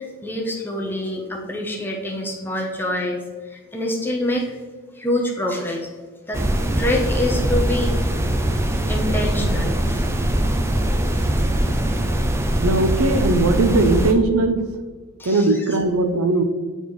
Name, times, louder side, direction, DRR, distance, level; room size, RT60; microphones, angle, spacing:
voice 1, 0.0-3.2 3.5-4.5 5.0-5.9 6.3-6.4 6.8-7.9 8.9-10.1 11.1-11.2 15.2-15.8, left 1 dB, 10° left, -1 dB, 0.8 m, -26 dB
sound 1, 6.3-14.1, right 1 dB, 10° right, 0.4 m, -21 dB
voice 2, 12.6-14.6 15.3-16.4, right 2 dB, 80° right, 8 dB, 0.6 m, -19 dB
8.7 x 4.1 x 3.1 m, 1.4 s
head